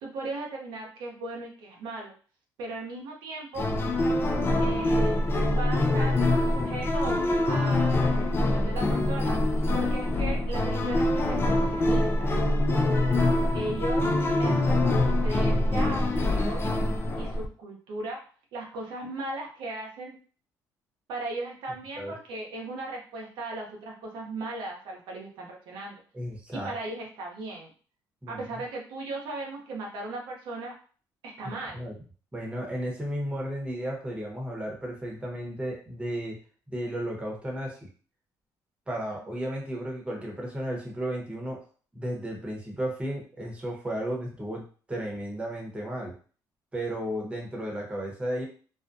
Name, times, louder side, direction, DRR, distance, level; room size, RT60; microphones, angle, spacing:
voice 1, 0.0-2.1 2.6-3.7 4.6-5.2 5.5-9.4 9.7-12.3 13.5-16.6 17.1-18.2 18.5-20.2 21.1-26.0 26.5-27.7 28.3-30.8 31.2-31.9, right 2 dB, 80° right, -1 dB, 0.7 m, -37 dB
sound 1, 3.6-17.5, left 1 dB, 30° left, 0.4 m, -24 dB
voice 2, 26.1-26.7 28.2-28.4 31.7-31.9 32.3-36.4 36.7-37.9 38.9-41.6 41.9-46.1 46.7-48.5, equal, 15° right, -1 dB, 0.9 m, -34 dB
2.4 x 2.2 x 2.6 m, 0.40 s
cardioid pair, 90°, 8 cm